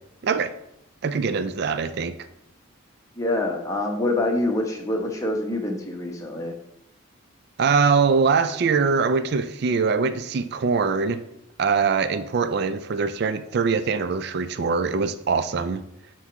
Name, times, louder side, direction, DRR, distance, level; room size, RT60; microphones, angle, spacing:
voice 1, 0.2-0.5 1.0-2.1 7.6-11.2 11.6-15.8, right 5 dB, 50° right, 11 dB, 0.3 m, -23 dB
voice 2, 3.2-6.5, left 2 dB, 15° left, 1 dB, 0.9 m, -26 dB
7.9 x 3.1 x 5.9 m, 0.80 s
head